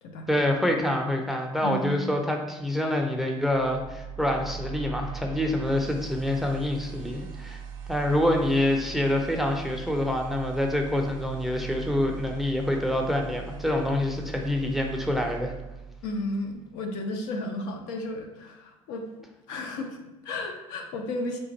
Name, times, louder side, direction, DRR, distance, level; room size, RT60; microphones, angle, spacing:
voice 1, 0.3-7.6 7.9-15.5, left 1 dB, ahead, 2 dB, 0.6 m, -26 dB
voice 2, 1.6-2.0 16.0-19.1 19.5-21.4, left 1 dB, 65° left, 3 dB, 0.5 m, -33 dB
sound 1, 3.4-16.5, right 7 dB, 60° right, 0.5 m, -40 dB
3.3 x 2.5 x 4.1 m, 0.98 s
figure-of-eight pair, 55°, 17 cm